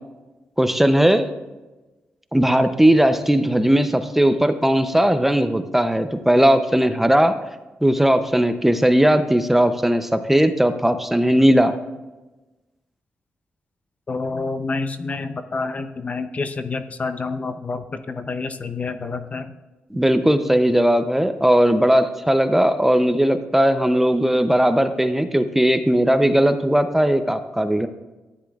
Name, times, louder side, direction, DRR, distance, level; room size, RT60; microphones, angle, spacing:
voice 1, 0.6-1.3 2.3-7.4 7.8-11.8 19.9-27.9, right 1 dB, 5° right, 9 dB, 0.5 m, -18 dB
voice 2, 14.1-19.5, left 4 dB, 35° left, 9 dB, 0.6 m, -28 dB
13.5 x 9.7 x 2.4 m, 1.1 s
cardioid pair, 105°, 4 cm